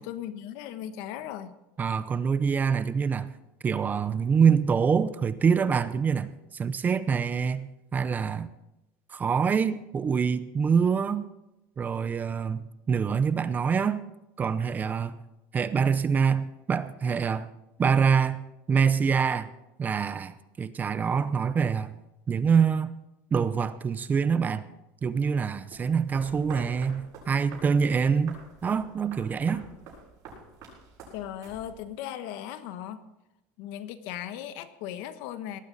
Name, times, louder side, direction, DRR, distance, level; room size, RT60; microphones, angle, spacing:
voice 1, 0.0-1.5 31.1-33.0 33.6-35.6, left 11 dB, 70° left, 11 dB, 1.3 m, -37 dB
voice 2, 1.8-3.3 3.6-8.5 9.1-11.3 11.8-14.0 14.4-15.2 15.5-17.5 17.8-18.4 18.7-19.5 19.8-22.0 22.3-23.0 23.3-24.6 25.0-29.6, right 6 dB, 25° right, 14 dB, 0.7 m, -25 dB
sound 1, 25.7-32.0, right 4 dB, 50° right, 7.1 m, -48 dB
19.0 x 13.5 x 4.1 m, 0.93 s
supercardioid pair, 140°, 8 cm